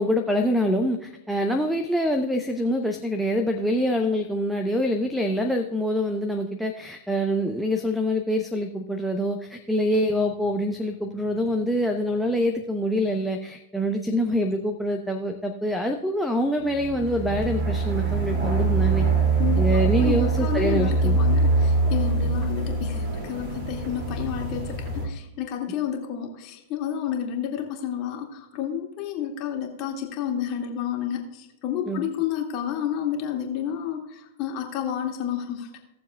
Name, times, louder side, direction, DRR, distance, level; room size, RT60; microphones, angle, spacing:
voice 1, 0.0-19.1 19.6-21.2 31.9-32.0, equal, ahead, 7 dB, 0.8 m, -25 dB
sound 1, 16.7-25.1, right 3 dB, 50° right, 2.5 m, -24 dB
voice 2, 20.0-35.8, left 9 dB, 45° left, 0 dB, 2.0 m, -30 dB
17.5 x 7.0 x 2.3 m, 0.94 s
figure-of-eight pair, 100°, 0 cm